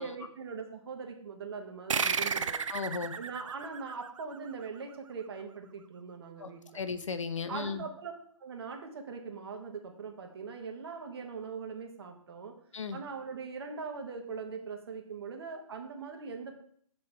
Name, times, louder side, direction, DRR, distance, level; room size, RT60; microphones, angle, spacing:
voice 1, 0.0-2.6 3.2-6.8 7.5-8.1 8.4-12.5 12.9-16.6, right 5 dB, 45° right, 3 dB, 1.2 m, -41 dB
sound 1, 1.9-4.9, right 6 dB, 60° right, 0.5 m, -33 dB
voice 2, 2.7-3.2 6.4-7.8 12.7-13.0, left 5 dB, 60° left, 11 dB, 0.6 m, -36 dB
7.3 x 3.8 x 4.5 m, 0.63 s
figure-of-eight pair, 140°, 18 cm